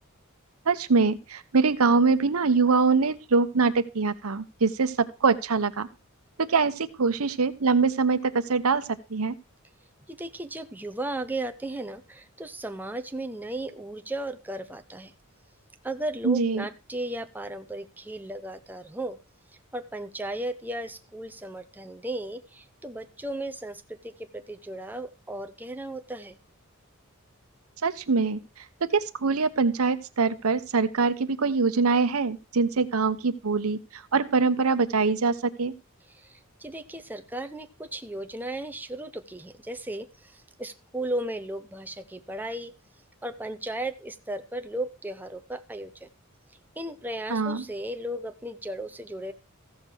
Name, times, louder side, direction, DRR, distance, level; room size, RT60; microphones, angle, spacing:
voice 1, 0.7-5.9 6.4-8.8 9.1-9.3 16.2-16.6 27.8-28.4 28.8-35.7 47.3-47.6, right 4 dB, 85° right, 0.9 m, -24 dB
voice 2, 10.1-15.1 15.8-19.2 19.7-26.4 36.1-42.7 43.2-46.1 46.8-49.3, right 1 dB, 10° right, 0.7 m, -35 dB
14.5 x 6.6 x 4.4 m
head